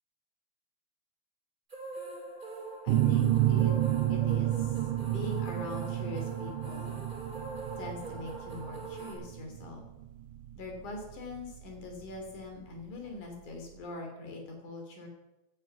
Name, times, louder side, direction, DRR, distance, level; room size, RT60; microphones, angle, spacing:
sound 1, 1.7-9.1, right 3 dB, 15° right, 3.1 m, -42 dB
voice 1, 2.8-3.7 4.1-7.0 7.8-9.8 10.5-15.1, left 3 dB, 75° left, 3 dB, 4.5 m, -42 dB
sound 2, 2.9-12.3, right 14 dB, 85° right, 2.3 m, -30 dB
17.0 x 9.7 x 6.0 m, 1.0 s
omnidirectional pair, 3.6 m